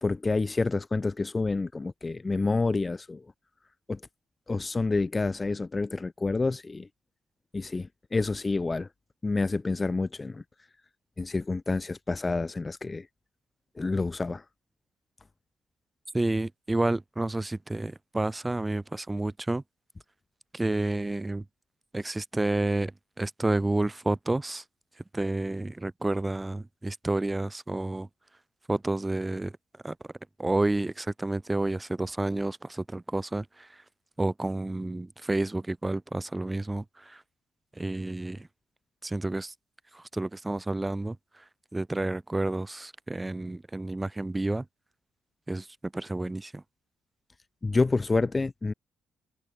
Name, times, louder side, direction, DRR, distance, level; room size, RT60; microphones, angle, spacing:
voice 1, 0.0-3.3 3.9-4.0 4.5-6.9 7.5-8.9 9.2-10.4 11.2-13.1 13.8-14.4 47.6-48.7, left 3 dB, 25° left, 0.4 m, -28 dB
voice 2, 16.1-19.6 20.5-21.4 21.9-24.6 25.1-28.1 28.7-29.5 29.8-30.0 30.4-33.7 34.2-37.2 37.8-38.5 39.0-39.5 39.9-41.2 41.7-44.7 45.5-46.6, right 2 dB, 15° right, 0.8 m, -30 dB
cardioid pair, 90°, 0 cm